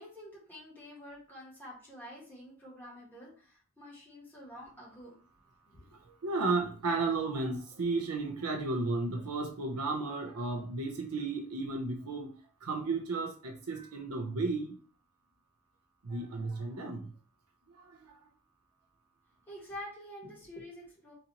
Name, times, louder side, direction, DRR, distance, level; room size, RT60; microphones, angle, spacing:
voice 1, 0.0-5.2 5.7-5.9 19.5-21.1, left 1 dB, 10° left, -6 dB, 1.6 m, -48 dB
voice 2, 6.0-12.3 12.6-14.8 16.0-17.1 17.8-18.2, right 3 dB, 85° right, 2 dB, 0.7 m, -33 dB
4.1 x 2.6 x 2.8 m, 0.40 s
head